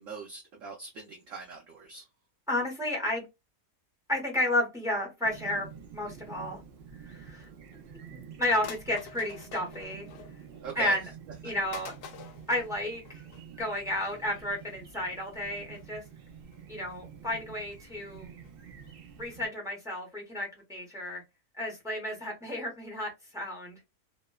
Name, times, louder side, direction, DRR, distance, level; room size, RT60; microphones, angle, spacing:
voice 1, 0.0-2.1 10.6-11.0, right 4 dB, 65° right, 0.9 m, -40 dB
voice 2, 2.5-3.2 4.1-5.7 5.9-6.6 7.0-7.5 8.4-10.1 10.8-11.0 11.4-11.9 12.5-13.2 13.6-16.0 16.7-18.3 19.2-21.2 21.6-23.8, left 1 dB, 5° right, 0.6 m, -32 dB
Chirp tweet, 5.2-19.5, right 7 dB, 85° right, 0.4 m, -49 dB
sound 1, 7.8-7.9 8.6-10.6 11.0-11.1 11.7-13.5 14.0-14.2 14.6-14.8 15.3-15.5 15.7-15.9 16.5-17.0 17.4-17.7 18.1-18.5 18.9-19.0 19.2-19.3 19.6-19.7 19.9-20.0 20.3-20.4 20.6-20.7, left 7 dB, 75° left, 1.1 m, -48 dB
2.9 x 2.1 x 2.2 m
omnidirectional pair, 1.7 m